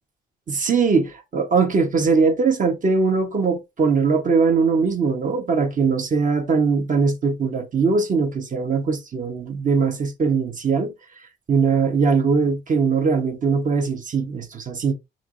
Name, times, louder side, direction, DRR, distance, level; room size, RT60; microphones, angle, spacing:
voice 1, 0.5-10.9 11.5-14.9, right 5 dB, 40° right, 1.3 m, -21 dB
5.7 x 3.1 x 2.6 m
cardioid pair, 90°, 20 cm